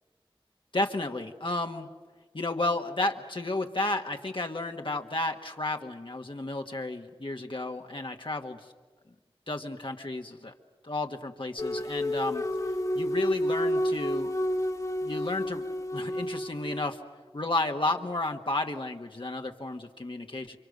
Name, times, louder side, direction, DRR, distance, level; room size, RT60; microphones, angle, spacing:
voice 1, 0.7-1.9 2.3-8.6 9.5-10.5 10.8-12.4 12.9-14.3 15.0-15.6 15.9-17.0 17.3-20.6, left 2 dB, 60° left, 3 dB, 1.4 m, -32 dB
sound 1, 11.6-16.8, equal, 35° left, 1.5 m, -30 dB
29.0 x 25.5 x 6.6 m, 1.4 s
wide cardioid pair, 40°, 10 cm